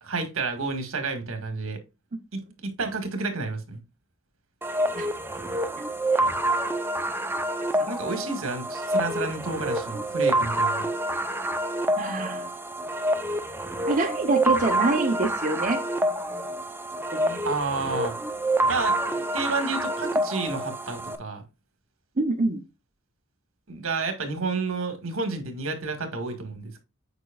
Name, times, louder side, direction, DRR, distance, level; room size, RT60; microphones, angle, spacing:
voice 1, 0.0-1.8 2.3-3.8 7.9-10.9 17.4-18.1 18.7-21.4 23.7-26.8, right 3 dB, 70° right, 1.8 m, -30 dB
sound 1, 4.6-21.2, right 1 dB, 10° right, 0.6 m, -27 dB
voice 2, 11.9-12.5 13.9-15.8 17.1-17.4 22.2-22.6, right 3 dB, 40° right, 0.8 m, -26 dB
8.0 x 5.2 x 2.4 m
head